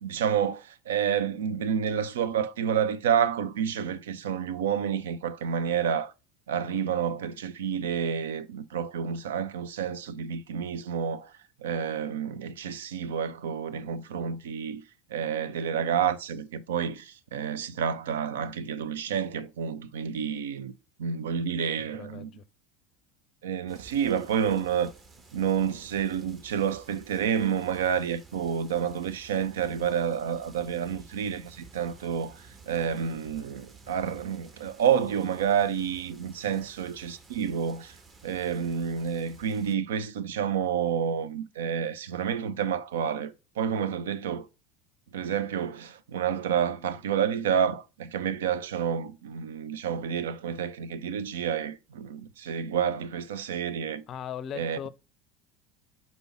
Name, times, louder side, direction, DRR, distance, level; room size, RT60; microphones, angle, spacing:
voice 1, 0.0-6.1 6.5-11.3 11.6-14.8 15.1-20.7 21.0-22.3 23.4-24.9 25.3-38.0 38.2-44.5 45.1-54.0 54.5-54.8, right 8 dB, 65° right, 0.5 m, -29 dB
voice 2, 21.8-22.4 36.5-36.7 54.1-54.9, left 9 dB, 40° left, 0.5 m, -39 dB
sound 1, 23.7-39.7, right 4 dB, 30° right, 1.4 m, -53 dB
5.3 x 4.1 x 5.9 m
figure-of-eight pair, 70°, 0 cm